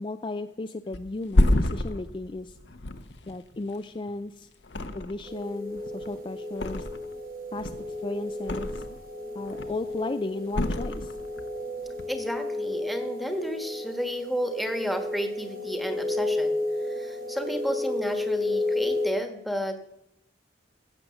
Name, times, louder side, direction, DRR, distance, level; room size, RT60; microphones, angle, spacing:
voice 1, 0.0-2.6 3.3-4.5 4.9-6.9 7.5-7.7 8.0-9.0 9.3-11.1, left 2 dB, 25° left, 8 dB, 0.4 m, -35 dB
Thump thud, 0.9-4.2 4.6-5.4 5.7-7.2 7.5-9.1 9.4-10.0 10.5-11.5 11.8-12.0, left 1 dB, 65° left, 0.9 m, -28 dB
sound 1, 5.3-19.1, left 2 dB, 50° right, 2.2 m, -32 dB
voice 2, 12.1-16.6 16.8-19.8, equal, ahead, 6 dB, 1.4 m, -32 dB
16.0 x 6.8 x 7.0 m, 0.80 s
head